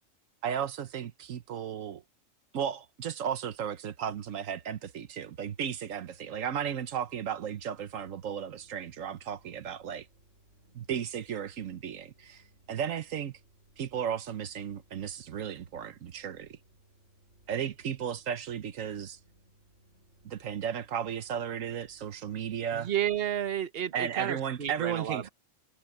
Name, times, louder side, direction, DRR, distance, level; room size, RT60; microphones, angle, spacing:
voice 1, 0.4-2.0 2.5-10.1 10.7-12.4 12.7-13.3 13.8-16.6 17.5-19.2 20.2-22.9 23.9-25.3, right 8 dB, 90° right, 1.3 m, -34 dB
sound 1, 6.1-23.6, right 1 dB, 70° right, 6.0 m, -64 dB
voice 2, 22.7-25.3, right 10 dB, 50° right, 1.3 m, -32 dB
omnidirectional pair, 1.3 m